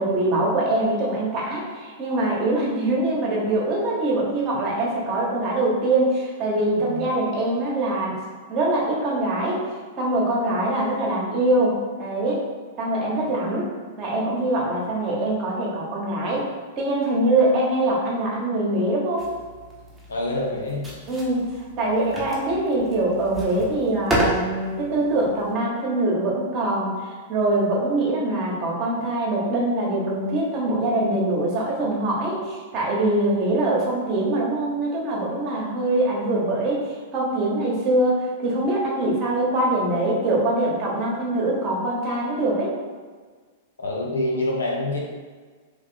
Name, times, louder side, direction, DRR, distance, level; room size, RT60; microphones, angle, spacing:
voice 1, 0.0-8.2 8.5-9.6 10.0-12.4 12.8-13.7 14.0-16.5 16.8-19.3 21.1-36.8 37.1-42.7, right 1 dB, 40° right, -3 dB, 1.1 m, -23 dB
sound 1, 19.2-25.5, right 1 dB, 10° right, 0.9 m, -31 dB
voice 2, 20.1-20.9 43.8-45.0, left 1 dB, 85° left, -2 dB, 0.8 m, -26 dB
3.1 x 2.4 x 3.7 m, 1.5 s
hypercardioid pair, 110°, 0 cm